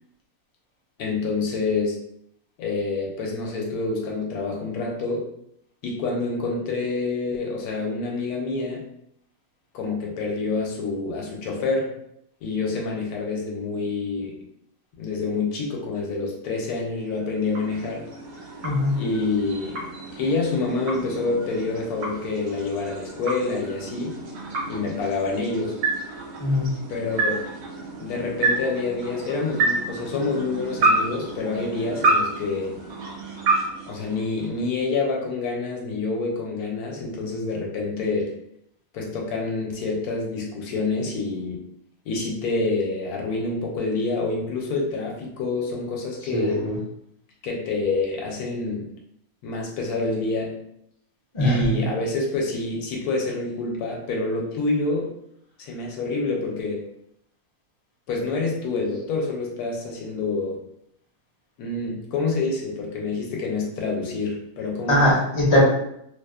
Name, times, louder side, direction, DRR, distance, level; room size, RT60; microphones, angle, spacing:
voice 1, 1.0-2.0 2.6-5.2 5.8-8.8 9.7-11.9 12.4-14.3 15.0-18.1 19.0-19.8 20.1-24.1 24.7-25.7 26.9-27.4 28.0-32.7 33.9-38.3 38.9-41.6 42.1-46.6 47.4-48.9 49.4-50.5 51.4-55.1 55.6-56.8 58.1-60.6 61.6-65.1, left 3 dB, 80° left, -1 dB, 1.1 m, -27 dB
sound 1, 17.0-34.8, right 3 dB, 75° right, 1.1 m, -29 dB
voice 2, 18.6-19.0 26.4-26.7 46.3-46.8 51.3-51.8 64.9-65.6, left 1 dB, 40° left, -4 dB, 0.4 m, -20 dB
2.8 x 2.0 x 2.2 m, 0.74 s
omnidirectional pair, 1.6 m